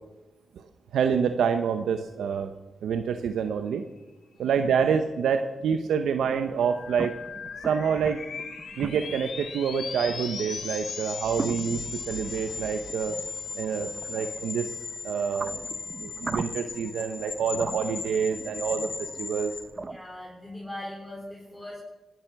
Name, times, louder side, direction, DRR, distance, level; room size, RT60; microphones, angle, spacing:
voice 1, 0.9-2.5 2.8-3.8 4.4-7.1 7.6-8.2 8.8-13.2 13.6-14.7 15.0-15.6 16.0-19.5, right 7 dB, 90° right, 8 dB, 0.8 m, -27 dB
voice 2, 4.4-4.7 14.2-14.4 19.7-21.8, left 1 dB, ahead, -3 dB, 4.0 m, -41 dB
sound 1, 6.2-20.0, right 3 dB, 35° right, 0.7 m, -41 dB
sound 2, 6.6-19.6, left 6 dB, 70° left, 2.0 m, -37 dB
sound 3, 11.2-14.7, right 2 dB, 70° right, 3.9 m, -49 dB
17.5 x 10.5 x 6.9 m, 1.1 s
cardioid pair, 70°, 0 cm